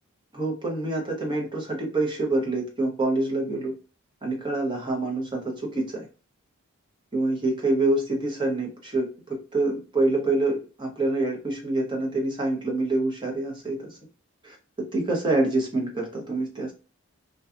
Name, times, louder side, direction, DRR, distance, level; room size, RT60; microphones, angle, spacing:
voice 1, 0.3-3.7 4.2-6.1 7.1-14.0 14.4-14.6 14.9-16.7, right 2 dB, 20° right, -1 dB, 0.7 m, -26 dB
2.6 x 2.3 x 2.4 m, 0.33 s
head